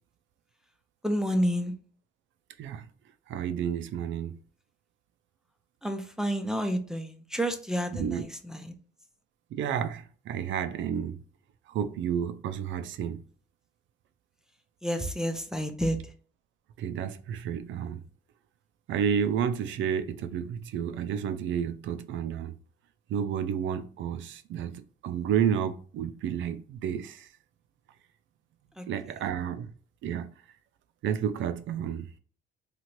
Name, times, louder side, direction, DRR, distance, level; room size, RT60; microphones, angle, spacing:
voice 1, 1.0-1.7 5.8-8.7 14.8-16.0 28.8-28.9, equal, 5° right, 0.4 m, -29 dB
voice 2, 3.3-4.4 7.9-8.3 9.5-11.2 11.7-13.2 16.8-18.0 18.9-22.5 23.1-27.3 28.9-29.7 30.0-30.3 31.0-32.1, right 8 dB, 70° right, 0.4 m, -31 dB
2.9 x 2.4 x 3.0 m
cardioid pair, 90°, 20 cm